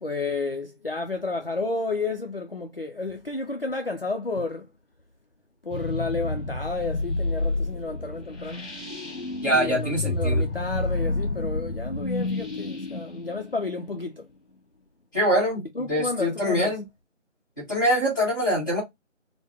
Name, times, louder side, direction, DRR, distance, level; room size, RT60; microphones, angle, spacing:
voice 1, 0.0-4.7 5.7-8.7 9.5-14.2 15.8-16.7, left 3 dB, 50° left, 0.4 m, -31 dB
sound 1, 5.7-14.3, left 2 dB, 65° left, 1.2 m, -30 dB
voice 2, 9.4-10.5 15.1-16.9 17.6-18.8, equal, 15° left, 1.4 m, -24 dB
3.8 x 2.0 x 3.4 m
figure-of-eight pair, 170°, 38 cm